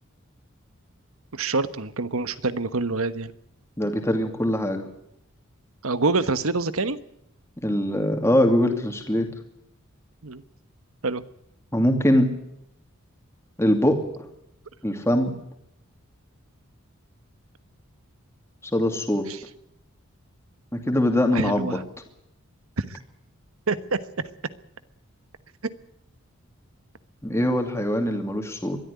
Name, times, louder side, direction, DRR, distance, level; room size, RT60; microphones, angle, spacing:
voice 1, 1.3-3.3 5.8-7.0 10.2-10.4 11.0-11.2 19.3-19.4 21.3-21.8 22.8-23.0 23.7-24.3 25.6-25.7, right 3 dB, 85° right, 14 dB, 1.3 m, -26 dB
voice 2, 3.8-4.9 7.6-9.3 11.7-12.3 13.6-14.1 14.8-15.3 18.7-19.3 20.7-21.8 27.2-28.8, left 1 dB, 10° left, 4 dB, 2.6 m, -22 dB
22.0 x 13.0 x 9.7 m, 0.79 s
head